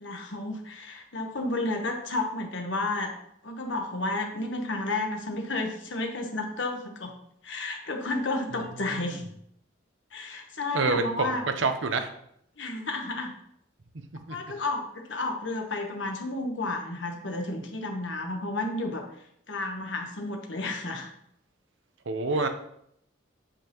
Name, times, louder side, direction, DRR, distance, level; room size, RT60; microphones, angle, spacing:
voice 1, 0.0-3.1 3.4-7.2 7.4-9.2 10.1-11.4 12.6-13.3 14.3-19.1 19.5-21.1 22.3-22.5, left 2 dB, 80° left, 3 dB, 1.1 m, -32 dB
voice 2, 10.7-12.1 14.3-14.4 22.1-22.5, right 3 dB, 85° right, 8 dB, 0.8 m, -27 dB
8.8 x 5.4 x 3.0 m, 0.73 s
head